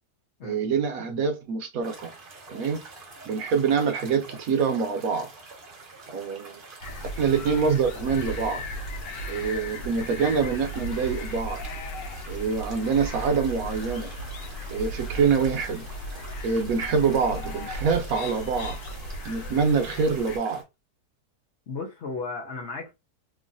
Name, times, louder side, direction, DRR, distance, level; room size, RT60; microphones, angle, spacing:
voice 1, 0.4-2.1 2.5-2.8 3.2-5.3 6.1-6.6 7.0-8.6 9.3-11.6 12.3-14.1 14.7-15.9 16.4-18.8 19.2-20.6, right 5 dB, 65° right, 1.0 m, -25 dB
sound 1, 1.8-20.6, right 3 dB, 45° right, 0.7 m, -46 dB
sound 2, 6.8-20.4, equal, 85° left, 1.2 m, -36 dB
voice 2, 21.7-22.9, left 4 dB, 60° left, 0.7 m, -35 dB
3.0 x 2.5 x 2.5 m
omnidirectional pair, 1.8 m